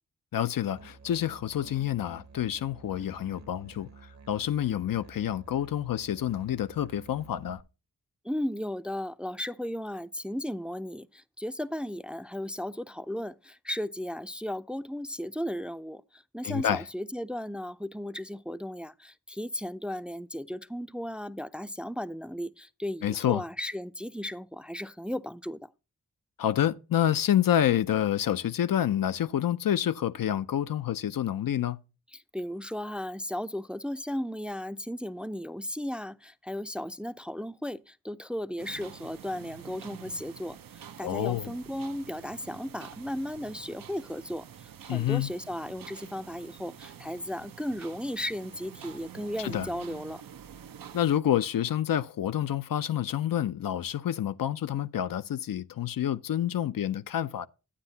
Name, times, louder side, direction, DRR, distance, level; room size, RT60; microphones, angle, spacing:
voice 1, 0.3-3.9 4.3-7.6 16.4-16.8 23.0-23.4 26.4-31.8 41.0-41.5 44.9-45.3 49.4-49.7 50.9-57.5, left 11 dB, 85° left, 0.5 m, -28 dB
Musical instrument, 0.7-7.6, right 4 dB, 55° right, 0.9 m, -51 dB
voice 2, 8.2-25.7 32.1-50.2, left 1 dB, 5° right, 0.4 m, -35 dB
sound 1, 38.6-51.1, right 9 dB, 90° right, 0.6 m, -47 dB
9.9 x 9.1 x 2.7 m
cardioid pair, 55°, 33 cm